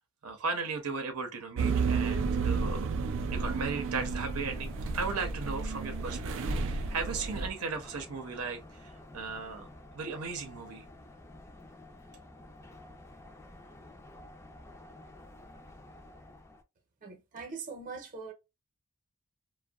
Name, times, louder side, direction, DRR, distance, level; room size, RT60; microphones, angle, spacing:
voice 1, 0.2-2.9 3.3-9.7 9.9-10.8, right 4 dB, 90° right, 0.7 m, -36 dB
sound 1, 1.6-7.5, right 4 dB, 60° right, 0.4 m, -32 dB
sound 2, 4.5-16.6, left 1 dB, 10° left, 0.4 m, -51 dB
voice 2, 17.0-18.3, right 4 dB, 40° right, 0.7 m, -42 dB
2.6 x 2.2 x 2.3 m
head